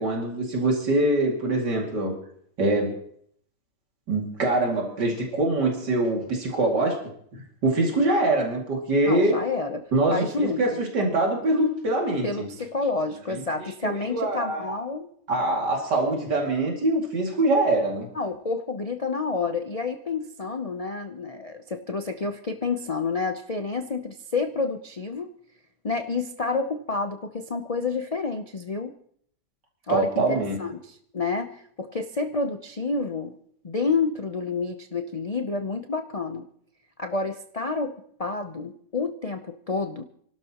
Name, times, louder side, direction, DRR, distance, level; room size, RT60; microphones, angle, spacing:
voice 1, 0.0-2.1 2.6-2.9 4.1-7.0 7.6-9.4 9.9-12.5 13.8-14.8 15.3-18.1 29.9-30.6, right 2 dB, 80° right, -1 dB, 3.0 m, -24 dB
voice 2, 9.0-10.8 12.2-15.1 18.1-25.3 25.8-28.9 29.9-33.4 33.6-36.5 37.0-40.0, left 4 dB, 70° left, 6 dB, 0.3 m, -29 dB
29.0 x 12.0 x 3.0 m, 0.65 s
omnidirectional pair, 1.8 m